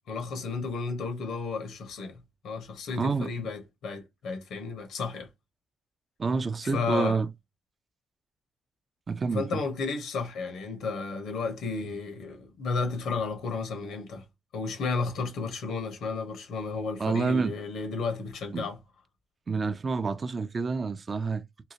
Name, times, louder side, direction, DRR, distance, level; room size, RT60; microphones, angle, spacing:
voice 1, 0.1-2.2 2.4-5.3 6.7-7.2 9.3-14.2 14.5-18.8, left 4 dB, 80° left, 1.1 m, -33 dB
voice 2, 2.9-3.3 6.2-7.3 9.1-9.6 17.0-17.5 18.5-18.7 19.5-21.4, right 4 dB, 40° right, 0.5 m, -28 dB
3.8 x 2.4 x 2.8 m
cardioid pair, 70°, 0 cm